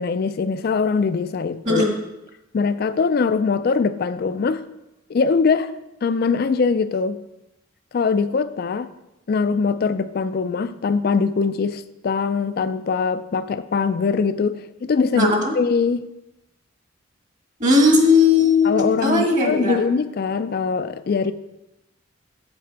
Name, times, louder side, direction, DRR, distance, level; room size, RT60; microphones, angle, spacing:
voice 1, 0.0-1.8 2.5-4.6 5.1-5.7 6.0-7.2 7.9-8.9 9.3-16.1 18.6-21.3, left 5 dB, 50° left, 12 dB, 0.4 m, -22 dB
voice 2, 15.1-15.5 17.6-18.7 19.0-19.8, left 3 dB, 40° right, 2 dB, 1.5 m, -17 dB
8.0 x 7.5 x 4.6 m, 0.93 s
head